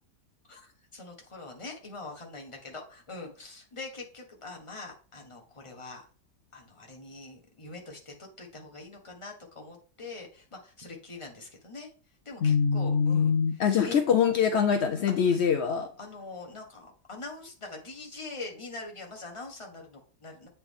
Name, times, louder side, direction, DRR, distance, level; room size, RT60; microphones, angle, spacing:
voice 1, 0.5-6.1 6.5-11.9 12.2-14.0 15.2-15.4 16.0-20.5, left 3 dB, 20° left, 1 dB, 1.2 m, -43 dB
voice 2, 12.4-15.9, left 6 dB, 70° left, 5 dB, 0.6 m, -24 dB
8.3 x 4.2 x 3.6 m, 0.41 s
omnidirectional pair, 1.8 m